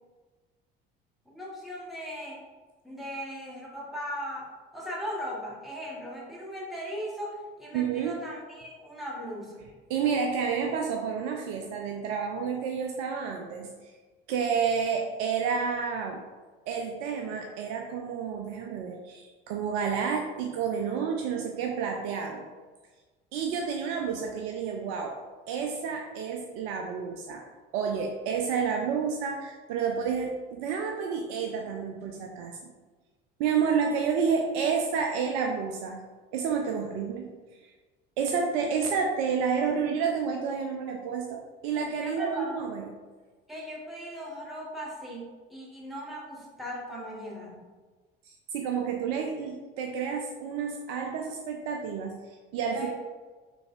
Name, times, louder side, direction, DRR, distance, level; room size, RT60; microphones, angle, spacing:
voice 1, 1.3-2.4 2.8-4.5 4.7-9.6 42.0-42.6 43.5-47.7 52.7-52.9, equal, ahead, -5 dB, 1.1 m, -38 dB
voice 2, 7.7-8.2 9.9-13.9 14.3-16.2 16.7-22.5 23.3-25.2 25.5-27.5 27.7-32.7 33.4-36.0 36.3-37.3 38.2-42.9 48.3-52.9, right 6 dB, 50° right, 2 dB, 0.4 m, -30 dB
3.9 x 3.3 x 2.5 m, 1.4 s
figure-of-eight pair, 55°, 29 cm